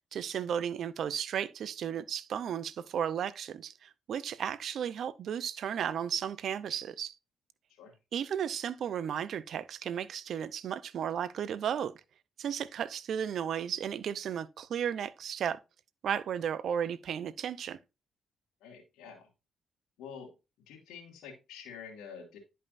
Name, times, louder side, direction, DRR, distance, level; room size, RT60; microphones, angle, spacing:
voice 1, 0.1-7.1 8.1-11.9 12.4-15.6 16.0-17.8, right 8 dB, 70° right, 0.6 m, -34 dB
voice 2, 18.6-19.3 20.0-20.3 20.7-22.4, left 6 dB, 85° left, 2.4 m, -47 dB
10.5 x 5.5 x 2.6 m
supercardioid pair, 65°, 0 cm